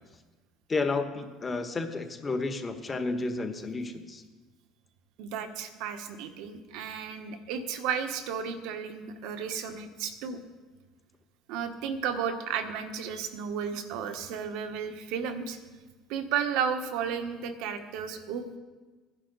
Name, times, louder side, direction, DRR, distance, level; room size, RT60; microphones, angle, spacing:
voice 1, 0.7-4.2, left 3 dB, 25° left, 7 dB, 1.3 m, -31 dB
voice 2, 5.2-10.4 11.5-15.6 16.1-18.6, right 7 dB, 80° right, 7 dB, 1.4 m, -33 dB
15.5 x 10.5 x 4.1 m, 1.3 s
cardioid pair, 110°, 0 cm